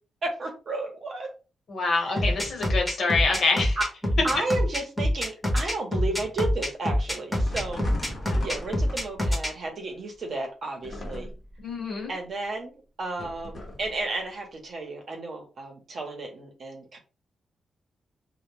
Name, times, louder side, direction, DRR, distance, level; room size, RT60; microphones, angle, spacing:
voice 1, 0.2-1.3 2.0-2.3 3.8-3.9 4.2-7.9 8.4-11.3 12.1-17.0, right 2 dB, 50° right, 1 dB, 0.7 m, -33 dB
voice 2, 1.7-3.8 8.3-8.4 11.6-12.1, left 4 dB, 55° left, 0 dB, 1.0 m, -26 dB
sound 1, 2.2-9.5, left 1 dB, ahead, 0.7 m, -25 dB
sound 2, 7.3-9.4 10.8-11.6 13.2-13.9, left 1 dB, 35° left, 0.7 m, -38 dB
2.1 x 2.0 x 3.0 m, 0.34 s
wide cardioid pair, 145°, 0 cm